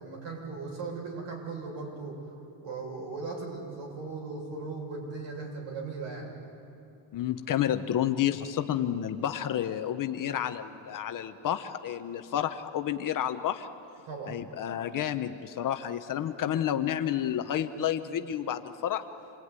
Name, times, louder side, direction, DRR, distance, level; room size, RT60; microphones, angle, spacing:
voice 1, 0.0-2.2 2.6-6.4 14.1-14.4, right 4 dB, 60° right, 0 dB, 7.1 m, -38 dB
voice 2, 7.1-13.7 14.3-19.0, left 10 dB, 40° left, 8 dB, 0.9 m, -30 dB
27.5 x 21.0 x 9.7 m, 2.9 s
cardioid pair, 160°, 49 cm